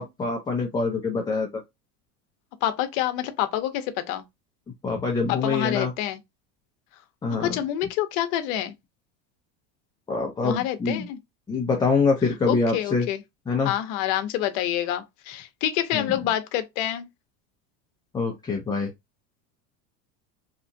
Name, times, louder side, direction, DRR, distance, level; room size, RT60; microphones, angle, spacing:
voice 1, 0.0-1.6 4.8-5.9 7.2-7.6 10.1-11.1 11.5-13.1 13.5-13.7 15.9-16.2 18.1-18.9, left 4 dB, 10° left, 0.4 m, -25 dB
voice 2, 2.6-4.2 5.3-6.2 7.4-8.7 10.4-11.2 12.5-13.2 13.6-17.1, left 12 dB, 65° left, 0.8 m, -27 dB
2.9 x 2.3 x 2.6 m
supercardioid pair, 115°, 43 cm